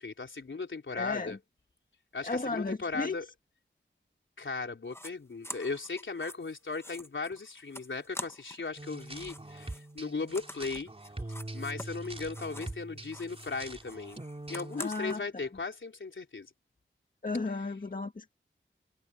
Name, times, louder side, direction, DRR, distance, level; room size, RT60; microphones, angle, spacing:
voice 1, 0.0-1.4 2.1-3.3 4.4-10.9 11.5-14.2 14.5-16.5, left 4 dB, 75° left, 3.9 m, -37 dB
voice 2, 0.9-1.4 2.2-3.3 14.8-15.5 17.2-18.3, left 3 dB, 45° left, 1.7 m, -34 dB
sound 1, 4.9-5.1 5.4-8.7 8.9-12.8 13.1-15.2, left 1 dB, 10° left, 1.3 m, -46 dB
sound 2, 8.8-14.8, right 2 dB, 30° right, 3.8 m, -43 dB
wide cardioid pair, 70°, 20 cm